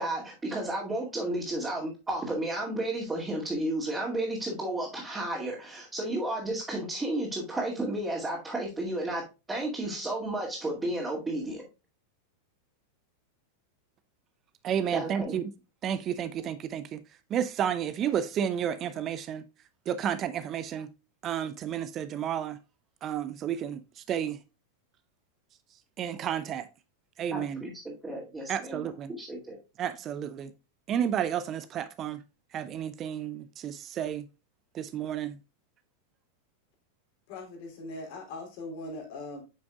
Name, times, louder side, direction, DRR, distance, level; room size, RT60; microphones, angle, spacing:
voice 1, 0.0-11.6 14.9-15.3 27.3-28.9 29.2-29.6, right 1 dB, 10° right, 2.3 m, -32 dB
voice 2, 14.6-15.5 15.8-17.0 17.3-19.4 19.9-20.9 21.2-22.6 23.0-24.4 26.0-26.7 27.2-27.7 28.5-29.1 29.8-30.5 30.9-32.2 32.5-34.2 34.7-35.4, right 9 dB, 30° right, 0.6 m, -31 dB
voice 3, 37.3-39.4, left 2 dB, 45° left, 2.9 m, -40 dB
8.7 x 6.0 x 2.4 m
figure-of-eight pair, 90°, 0 cm